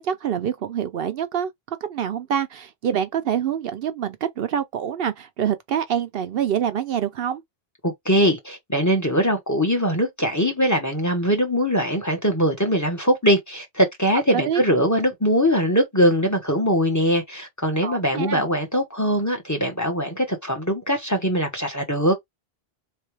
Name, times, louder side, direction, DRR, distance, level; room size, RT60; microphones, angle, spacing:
voice 1, 0.0-1.5 1.9-7.4 14.3-14.6 17.8-18.4, right 9 dB, 70° right, 0.8 m, -26 dB
voice 2, 7.8-22.2, equal, 20° left, 1.0 m, -21 dB
3.8 x 3.3 x 3.3 m
omnidirectional pair, 1.0 m